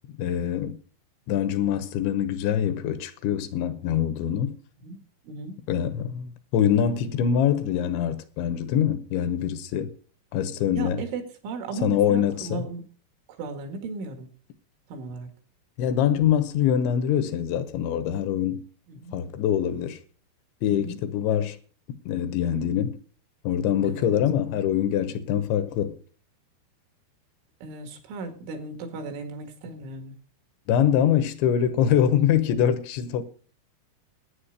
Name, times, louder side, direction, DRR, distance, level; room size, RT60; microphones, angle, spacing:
voice 1, 0.2-0.8 1.3-4.6 5.7-9.9 10.3-11.0 11.8-12.7 15.8-18.6 19.1-20.0 20.6-21.6 22.1-23.0 23.4-26.0 30.7-33.2, left 9 dB, 75° left, 3.1 m, -24 dB
voice 2, 5.2-5.6 10.7-12.9 13.3-14.3 14.9-15.3 18.9-19.2 20.7-21.0 23.8-24.2 27.6-30.2, right 4 dB, 80° right, 4.4 m, -36 dB
11.5 x 9.4 x 6.5 m
omnidirectional pair, 5.5 m